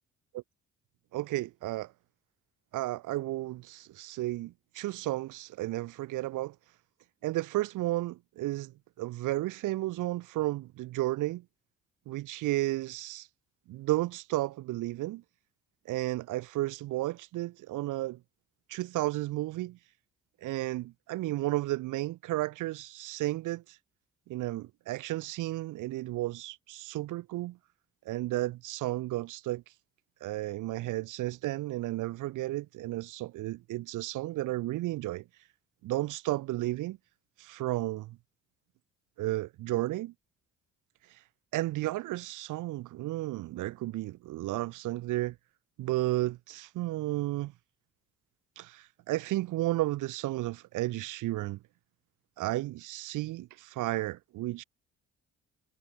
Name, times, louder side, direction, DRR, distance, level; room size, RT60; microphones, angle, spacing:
voice 1, 1.1-1.9 2.7-6.5 7.2-11.4 12.1-13.3 13.7-15.2 15.9-18.2 18.7-19.8 20.4-23.8 24.3-27.6 28.0-29.6 30.2-35.2 35.8-37.0 37.4-38.2 39.2-40.1 41.5-45.3 45.8-47.5 48.6-51.6 52.4-54.6, right 17 dB, 90° right, 1.5 m, -33 dB
cardioid pair, 90°, 30 cm